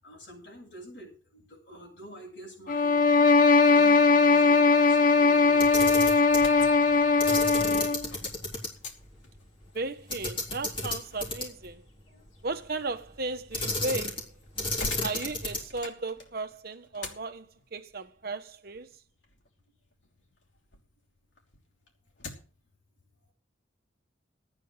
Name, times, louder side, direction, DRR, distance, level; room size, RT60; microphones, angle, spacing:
voice 1, 0.0-3.0 3.7-6.3 12.1-12.2, equal, 60° left, 7.9 m, -47 dB
sound 1, 2.7-8.1, left 4 dB, 45° left, 0.9 m, -20 dB
Camera, 5.5-6.5 7.2-8.7 9.0-9.1 10.1-11.7 13.5-14.3 14.6-15.8, left 2 dB, 25° left, 3.7 m, -32 dB
sound 2, 6.3-20.9 21.3-22.7, left 3 dB, 80° left, 3.1 m, -47 dB
voice 2, 9.7-11.8 12.4-14.3 15.0-18.9, right 3 dB, 50° right, 1.1 m, -35 dB
13.0 x 9.2 x 6.4 m
head